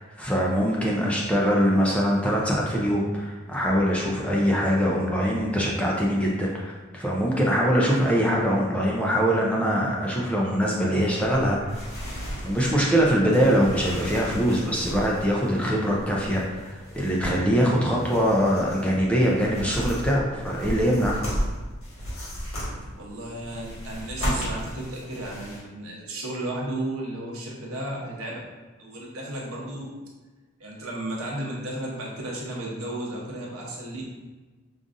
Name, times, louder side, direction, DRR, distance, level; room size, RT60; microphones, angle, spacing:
voice 1, 0.0-11.9 12.4-21.2, equal, 5° left, -3 dB, 0.4 m, -23 dB
sound 1, 10.9-25.6, equal, 80° left, 1.4 m, -35 dB
voice 2, 23.0-28.4 28.8-29.9 30.6-34.0, right 1 dB, 75° right, -3 dB, 0.9 m, -34 dB
5.2 x 2.4 x 2.5 m, 1.3 s
head